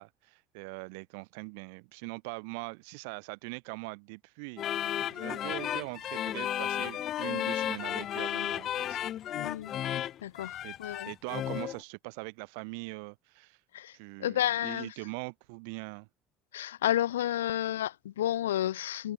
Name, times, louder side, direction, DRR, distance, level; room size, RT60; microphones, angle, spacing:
voice 1, 0.0-9.0 10.6-13.6 13.9-16.1, right 34 dB, 65° right, 1.9 m, -42 dB
sound 1, 4.6-11.8, left 11 dB, 45° left, 0.3 m, -33 dB
voice 2, 9.3-9.7 10.2-11.1 13.7-13.9 14.2-14.9 16.5-19.1, left 12 dB, 75° left, 1.4 m, -31 dB
figure-of-eight pair, 60°, 0 cm